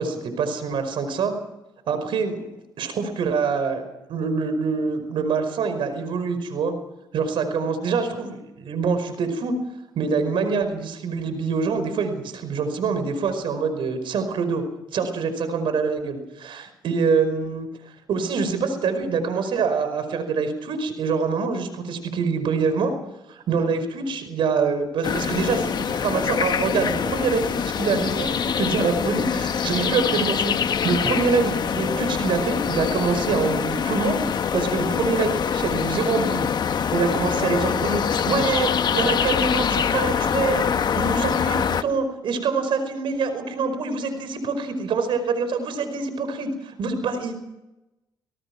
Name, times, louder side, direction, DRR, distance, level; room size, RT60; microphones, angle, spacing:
voice 1, 0.0-1.4 1.9-2.4 2.8-6.7 7.1-9.6 9.9-14.6 14.9-17.7 18.1-22.9 23.3-34.2 34.5-36.5 36.9-40.7 41.0-47.3, right 5 dB, 75° right, 9 dB, 5.1 m, -25 dB
sound 1, 25.0-41.8, left 7 dB, 55° left, 1.1 m, -24 dB
26.5 x 18.5 x 6.1 m, 0.93 s
cardioid pair, 75°, 9 cm